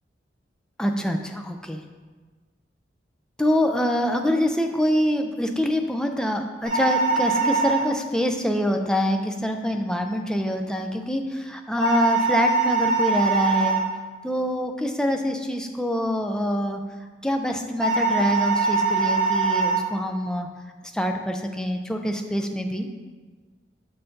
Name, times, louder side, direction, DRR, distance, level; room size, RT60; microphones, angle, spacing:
voice 1, 0.8-1.8 3.4-13.8 14.2-16.8 17.2-20.5 20.9-22.9, equal, 5° left, 4 dB, 0.4 m, -25 dB
sound 1, 6.6-7.8 11.8-13.8 17.8-19.8, right 4 dB, 45° right, 1.8 m, -22 dB
6.9 x 5.6 x 2.6 m, 1.4 s
head